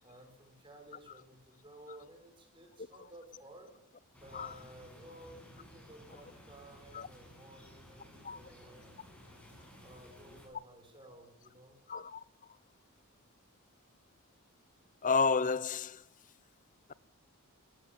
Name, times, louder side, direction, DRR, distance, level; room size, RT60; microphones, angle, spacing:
voice 1, 0.0-3.7 4.1-9.3 9.8-11.8, right 1 dB, 20° right, 6.0 m, -55 dB
sound 1, 4.1-10.5, equal, 5° left, 6.9 m, -56 dB
voice 2, 11.9-12.2 15.0-16.0, left 4 dB, 35° left, 0.8 m, -30 dB
19.0 x 15.5 x 9.1 m
head